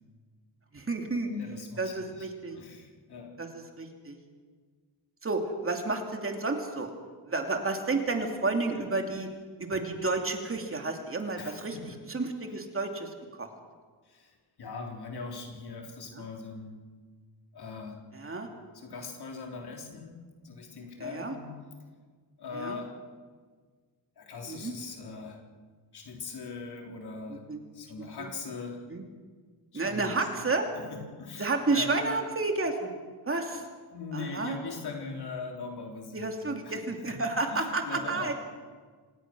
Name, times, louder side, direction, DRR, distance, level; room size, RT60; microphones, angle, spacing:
voice 1, 0.7-1.3 1.8-2.6 3.4-4.2 5.2-6.9 7.3-9.3 9.6-11.8 12.1-13.1 13.4-13.5 16.2-16.3 18.1-18.5 21.0-21.3 22.5-22.8 24.5-24.7 27.3-27.6 28.9-29.0 29.7-30.7 31.4-32.9 33.3-33.6 34.1-34.6 36.1-38.3, right 3 dB, 35° right, 3 dB, 2.8 m, -31 dB
voice 2, 1.3-3.4 8.7-8.9 11.4-12.0 14.1-16.8 17.5-18.1 18.7-21.5 22.4-22.9 24.2-25.4 25.9-28.8 29.7-30.5 30.8-31.9 33.9-36.8 37.1-37.2 37.5-38.3, left 4 dB, 70° left, 1 dB, 4.0 m, -41 dB
26.0 x 19.0 x 6.2 m, 1.5 s
wide cardioid pair, 135°, 40 cm